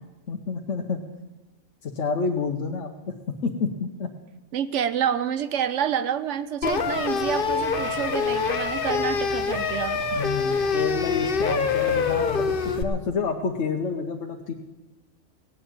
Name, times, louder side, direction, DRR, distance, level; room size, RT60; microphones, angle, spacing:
voice 1, 0.3-1.0 1.8-2.9 3.4-4.1 10.1-14.5, left 5 dB, 65° left, 1 dB, 1.3 m, -29 dB
voice 2, 4.5-10.0, right 9 dB, 65° right, 14 dB, 0.9 m, -28 dB
sound 1, 6.6-12.8, left 5 dB, 45° left, 1.1 m, -25 dB
17.0 x 7.3 x 9.0 m, 1.1 s
omnidirectional pair, 1.4 m